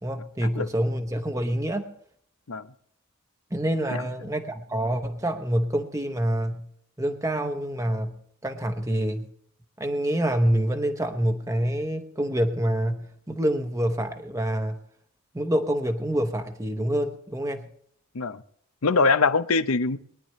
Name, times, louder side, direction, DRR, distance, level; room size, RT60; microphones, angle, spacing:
voice 1, 0.0-1.9 3.5-6.7 7.0-8.2 8.4-9.3 9.8-14.8 15.3-17.6, right 1 dB, 15° right, 6 dB, 0.9 m, -26 dB
voice 2, 18.8-20.0, left 4 dB, 85° left, 12 dB, 0.8 m, -22 dB
22.0 x 10.5 x 3.1 m, 0.65 s
head